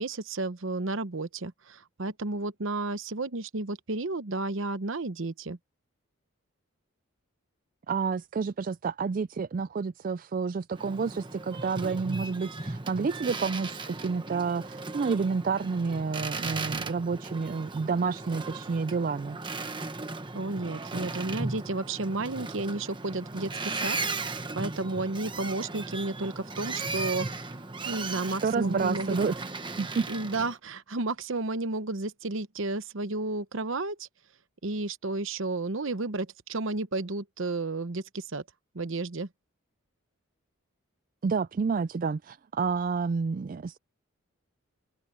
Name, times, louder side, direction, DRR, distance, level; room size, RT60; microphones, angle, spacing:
voice 1, 0.0-5.6 20.3-27.3 27.9-29.2 30.1-34.1 34.6-38.4 38.7-39.3, right 2 dB, 60° right, 0.9 m, -32 dB
voice 2, 7.9-19.4 28.3-29.3 29.8-30.1 41.2-43.8, right 5 dB, 40° right, 0.3 m, -29 dB
Boat Water vehicle, 10.7-30.6, right 3 dB, 20° right, 1.1 m, -37 dB
open air
head